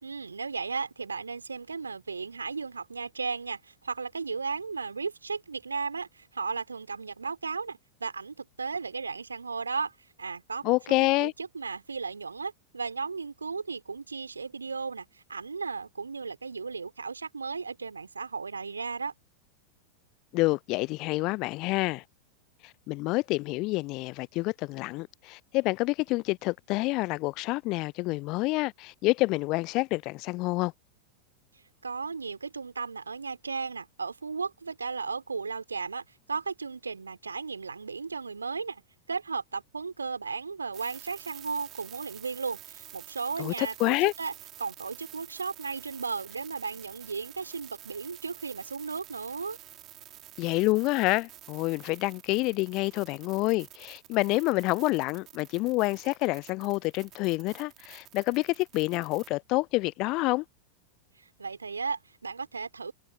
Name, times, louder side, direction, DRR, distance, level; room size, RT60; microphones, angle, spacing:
voice 1, 0.0-9.9 10.2-19.1 31.8-38.8 39.1-44.3 44.6-49.6 61.2-62.9, right 4 dB, 75° right, 3.8 m, -35 dB
voice 2, 10.6-11.3 20.3-22.0 22.6-30.7 43.4-44.1 50.4-60.4, left 22 dB, 40° left, 0.5 m, -28 dB
sound 1, 40.7-59.3, right 14 dB, 35° right, 4.8 m, -49 dB
figure-of-eight pair, 90°, 0 cm